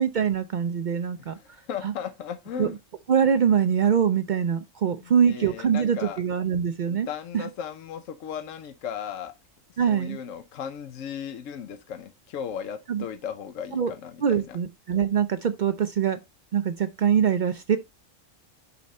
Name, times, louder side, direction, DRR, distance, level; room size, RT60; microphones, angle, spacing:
voice 1, 0.0-1.3 1.8-1.9 2.6-2.7 3.1-7.1 7.3-7.4 9.8-10.2 12.9-13.0 13.7-13.9 14.2-16.2 16.5-17.8, right 8 dB, 80° right, 0.4 m, -23 dB
voice 2, 1.3-2.8 5.0-6.2 6.9-9.3 9.9-14.6, left 8 dB, 75° left, 1.1 m, -36 dB
5.7 x 5.2 x 4.1 m
omnidirectional pair, 1.3 m